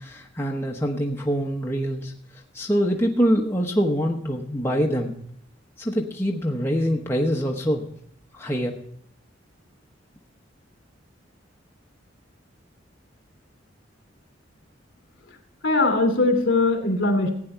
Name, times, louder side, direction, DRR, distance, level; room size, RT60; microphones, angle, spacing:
voice 1, 0.0-5.2 5.8-7.9 8.3-8.8, equal, 15° left, 0 dB, 1.0 m, -25 dB
voice 2, 15.6-17.3, left 2 dB, 70° left, 4 dB, 3.0 m, -21 dB
15.5 x 9.3 x 4.5 m, 0.67 s
head